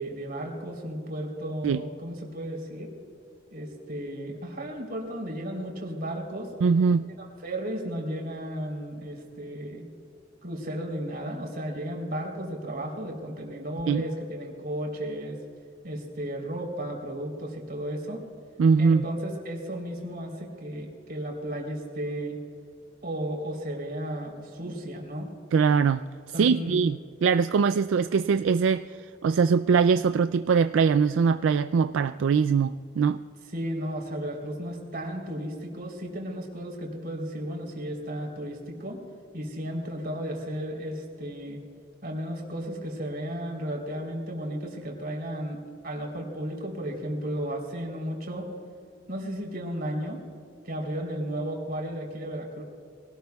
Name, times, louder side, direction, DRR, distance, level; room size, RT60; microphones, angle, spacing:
voice 1, 0.0-2.9 3.5-6.5 7.2-9.8 10.4-15.4 15.8-18.2 18.8-22.4 23.0-25.3 26.3-26.7 33.5-39.0 39.3-41.6 42.0-45.6 45.8-48.5 49.1-50.2 50.7-52.6, right 1 dB, 50° right, 0 dB, 3.6 m, -34 dB
voice 2, 6.6-7.0 13.9-14.0 18.6-19.0 25.5-26.0 26.4-28.9 29.2-33.2, right 5 dB, 80° right, 11 dB, 0.3 m, -22 dB
24.0 x 18.0 x 2.3 m, 2.3 s
head